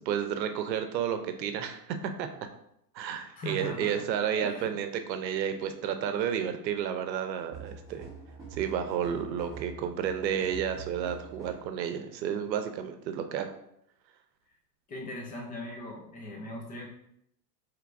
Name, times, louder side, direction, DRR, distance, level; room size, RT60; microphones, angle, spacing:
voice 1, 0.1-1.8 2.2-2.3 2.9-8.1 8.5-13.5, right 8 dB, 90° right, 8 dB, 0.7 m, -31 dB
voice 2, 3.4-4.1 4.3-4.8 14.9-16.9, left 1 dB, 20° left, -2 dB, 0.5 m, -39 dB
sound 1, 7.5-11.7, right 5 dB, 5° right, 1.2 m, -45 dB
4.5 x 3.3 x 2.6 m, 0.75 s
supercardioid pair, 135°, 49 cm